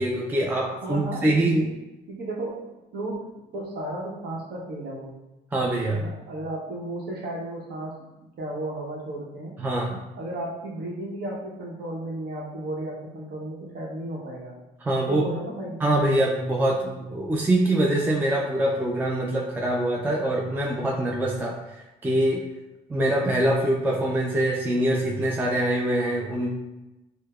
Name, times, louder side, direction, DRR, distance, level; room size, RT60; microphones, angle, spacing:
voice 1, 0.0-1.7 5.5-6.1 9.6-10.0 14.8-15.3 15.8-22.4 22.9-26.5, right 1 dB, 10° right, -2 dB, 0.3 m, -24 dB
voice 2, 0.7-1.7 2.1-5.1 6.0-9.6 10.2-14.6 15.1-15.8, right 1 dB, 70° right, -2 dB, 0.9 m, -34 dB
4.4 x 2.0 x 2.3 m, 1.0 s
cardioid pair, 110°, 17 cm